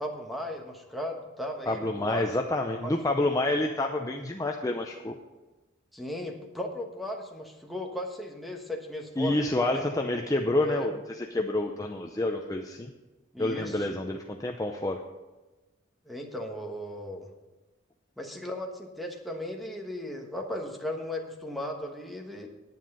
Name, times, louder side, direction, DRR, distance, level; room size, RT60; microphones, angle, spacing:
voice 1, 0.0-2.3 2.8-2.9 5.9-9.9 10.6-10.9 13.3-14.0 16.0-17.3 18.2-22.5, left 1 dB, ahead, 0 dB, 1.3 m, -36 dB
voice 2, 1.7-5.1 9.2-12.9 13.4-15.0, left 2 dB, 20° left, 3 dB, 0.6 m, -28 dB
10.0 x 9.2 x 5.5 m, 1.1 s
head